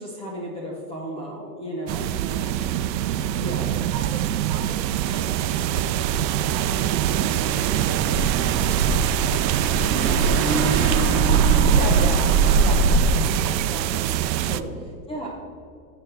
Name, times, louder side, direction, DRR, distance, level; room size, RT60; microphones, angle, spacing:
voice 1, 0.0-2.1 3.4-3.8 11.7-14.7 15.1-15.3, equal, 10° left, -3 dB, 0.7 m, -33 dB
sound 1, 1.9-14.6, right 11 dB, 90° right, 0.6 m, -23 dB
voice 2, 2.2-2.7 3.3-3.6 3.9-5.6 5.9-11.1 14.5-14.9, right 5 dB, 25° right, 3 dB, 1.0 m, -42 dB
sound 2, 4.9-11.1, right 3 dB, 60° left, 2.1 m, -41 dB
Car / Engine, 6.5-13.3, right 3 dB, 55° right, 1.5 m, -23 dB
14.0 x 7.8 x 3.3 m, 2.4 s
supercardioid pair, 160°, 50 cm